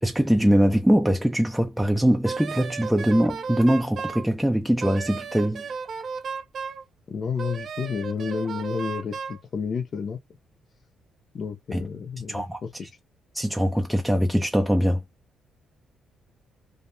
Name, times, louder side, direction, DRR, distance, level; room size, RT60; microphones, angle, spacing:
voice 1, 0.0-5.7 11.7-11.9 12.3-12.6 13.3-15.0, equal, 5° right, 0.5 m, -22 dB
Wind instrument woodwind instrument, 2.2-4.2 4.8-6.8 7.4-9.4, right 5 dB, 55° right, 0.6 m, -34 dB
voice 2, 7.1-10.2 11.3-12.7, left 6 dB, 50° left, 0.7 m, -30 dB
3.4 x 2.1 x 2.6 m
cardioid pair, 90°, 0 cm